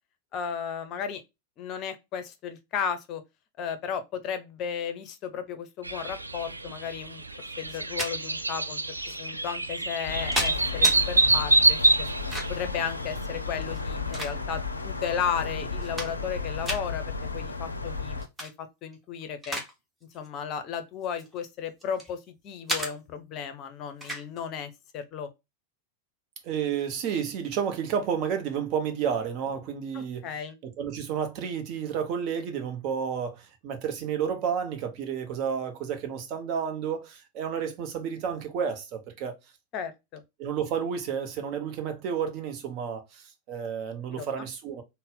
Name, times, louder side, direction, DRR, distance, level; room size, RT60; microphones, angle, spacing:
voice 1, 0.3-1.2 1.6-3.2 3.6-7.2 7.6-8.8 9.2-11.8 12.5-19.6 20.1-22.2 22.4-25.3 29.9-30.6 39.7-40.2 44.1-44.2, left 7 dB, 35° left, 0.6 m, -34 dB
sound 1, 5.8-13.1, right 2 dB, 80° right, 0.4 m, -26 dB
sound 2, 7.7-8.1 9.1-9.2 9.9-11.0 12.0-12.7 13.7-14.7 15.3-15.4 15.7-16.4 16.6-16.8 18.2-18.5 18.9-19.7 20.0-20.3 21.0-22.1 22.7-22.9 24.0-24.3, equal, 10° right, 1.1 m, -33 dB
sound 3, 10.1-18.3, left 4 dB, 80° left, 0.4 m, -34 dB
voice 2, 26.4-30.3 30.6-39.4 40.4-44.8, right 7 dB, 40° right, 0.8 m, -31 dB
4.0 x 2.1 x 3.6 m
figure-of-eight pair, 90°, 0 cm